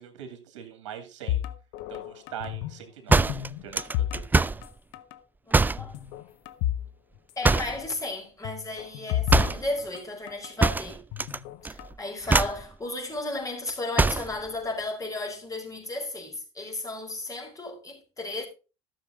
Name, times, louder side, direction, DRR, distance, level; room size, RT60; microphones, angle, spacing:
voice 1, 0.0-1.4 1.9-4.2, right 9 dB, 80° right, 2.3 m, -42 dB
sound 1, 1.3-2.8 3.1-4.7 4.9-5.2 5.8-6.9 7.2-7.3 8.4-10.5 11.1-11.9, left 13 dB, 70° left, 1.0 m, -32 dB
sound 2, 3.1-4.7 5.5-5.9 7.4-7.9 9.3-9.7 10.6-11.4 11.6-11.9 12.3-12.7 14.0-14.3, right 3 dB, 10° right, 0.4 m, -23 dB
voice 2, 5.5-5.9 7.4-11.0 11.6-18.5, left 2 dB, 20° left, 5.2 m, -34 dB
13.0 x 7.1 x 3.9 m
hypercardioid pair, 75°, 15 cm